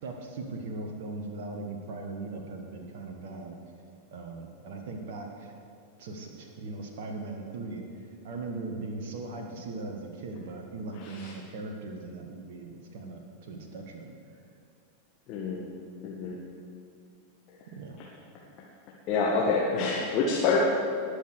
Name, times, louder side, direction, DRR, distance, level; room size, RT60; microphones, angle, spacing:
voice 1, 0.0-3.6 4.1-5.5 6.0-14.1 17.7-18.0, right 3 dB, 50° right, 3 dB, 1.4 m, -39 dB
voice 2, 15.3-15.6 16.0-16.4 19.1-20.6, left 4 dB, 40° left, -4 dB, 1.7 m, -27 dB
19.0 x 6.4 x 6.7 m, 2.4 s
figure-of-eight pair, 90°, 0 cm